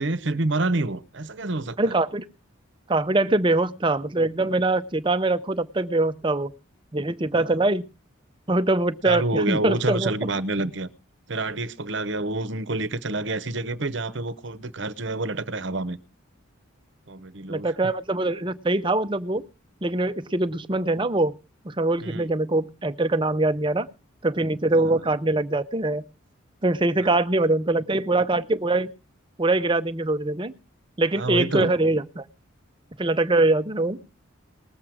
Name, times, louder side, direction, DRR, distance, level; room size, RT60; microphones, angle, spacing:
voice 1, 0.0-1.9 7.4-7.6 9.0-10.9 11.3-16.0 17.1-17.7 22.0-22.3 24.8-25.0 27.0-27.2 31.1-31.7, right 2 dB, 60° right, 0.9 m, -28 dB
voice 2, 1.8-2.2 2.9-6.5 6.9-7.8 8.5-10.1 17.5-19.4 19.8-21.3 21.6-23.9 24.2-26.0 26.6-28.9 29.4-30.5 31.0-32.2 33.0-34.0, right 2 dB, 25° right, 0.6 m, -23 dB
20.0 x 7.6 x 4.8 m
head